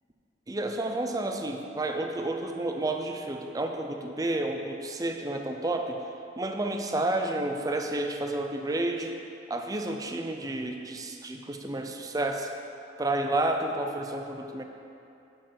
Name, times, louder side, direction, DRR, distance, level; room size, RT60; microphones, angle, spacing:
voice 1, 0.5-6.0 6.4-9.2 9.5-12.5 13.0-14.6, right 2 dB, 20° right, 4 dB, 0.4 m, -30 dB
7.6 x 4.5 x 5.8 m, 2.7 s
head